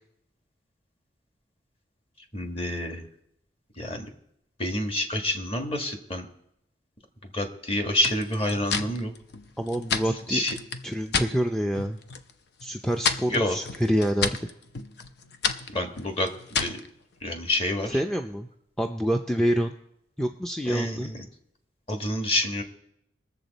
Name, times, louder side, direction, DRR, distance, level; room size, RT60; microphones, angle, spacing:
voice 1, 2.3-3.0 3.8-4.1 4.6-6.3 7.3-9.1 10.3-10.5 13.3-13.6 15.7-16.3 16.6-16.7 17.2-18.0 20.7-21.2 21.9-22.6, left 1 dB, 30° left, 4 dB, 1.4 m, -28 dB
sound 1, 8.0-11.3 11.7-12.3 12.6-16.9, left 5 dB, 60° left, 0.7 m, -31 dB
voice 2, 9.6-10.4 10.8-12.0 12.6-14.4 17.9-18.5 18.8-19.8 20.2-21.1, equal, 5° left, 4 dB, 0.4 m, -27 dB
21.0 x 7.2 x 4.0 m, 0.78 s
head